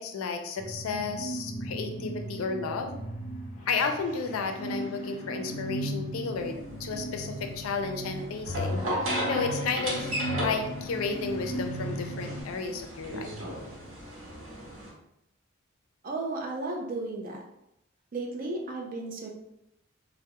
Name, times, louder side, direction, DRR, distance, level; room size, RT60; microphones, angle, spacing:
voice 1, 0.0-2.9 3.7-13.4, left 4 dB, 85° left, 5 dB, 0.4 m, -33 dB
sound 1, 0.6-12.4, right 1 dB, 35° left, 0.6 m, -37 dB
sound 2, 6.3-14.9, left 1 dB, 75° right, 0.9 m, -35 dB
voice 2, 16.0-17.4 18.1-19.3, right 2 dB, 40° right, 0 dB, 0.4 m, -34 dB
2.2 x 2.0 x 2.8 m, 0.80 s
head